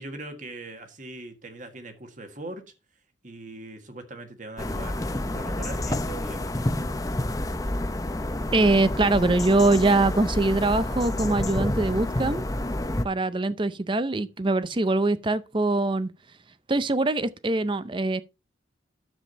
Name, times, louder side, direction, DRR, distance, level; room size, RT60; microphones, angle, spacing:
voice 1, 0.0-2.7 3.2-6.5, right 2 dB, 40° right, 1.6 m, -41 dB
sound 1, 4.6-13.1, left 1 dB, 20° left, 0.6 m, -29 dB
voice 2, 8.5-12.5 13.0-16.1 16.7-18.2, right 2 dB, 25° right, 0.5 m, -23 dB
10.0 x 7.3 x 4.0 m
head